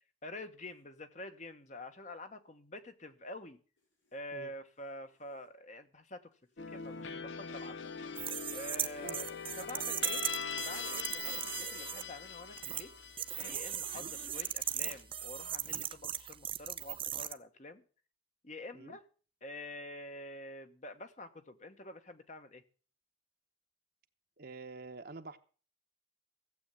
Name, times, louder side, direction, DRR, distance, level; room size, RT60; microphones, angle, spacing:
voice 1, 0.2-3.6 4.1-7.9 8.5-9.2 9.6-10.2 10.6-12.9 13.5-17.8 18.4-19.1 19.4-22.6, left 1 dB, 40° left, 1.3 m, -47 dB
sound 1, 0.6-0.8 3.8-4.2 4.5-5.7 6.3-7.2 8.2-9.1 9.5-9.8 10.8-11.0 11.2-11.8 13.2-14.5 15.3-15.5 15.8-15.9 16.4-16.5, right 1 dB, 85° left, 5.4 m, -67 dB
sound 2, 6.6-15.4, left 6 dB, 70° left, 0.8 m, -43 dB
sound 3, 8.2-12.0 12.6-12.8 13.2-17.3, right 10 dB, 30° right, 0.7 m, -37 dB
voice 2, 9.5-10.0 13.9-14.1 18.7-19.0 24.4-25.4, right 3 dB, 55° right, 1.0 m, -48 dB
15.0 x 8.1 x 7.3 m
head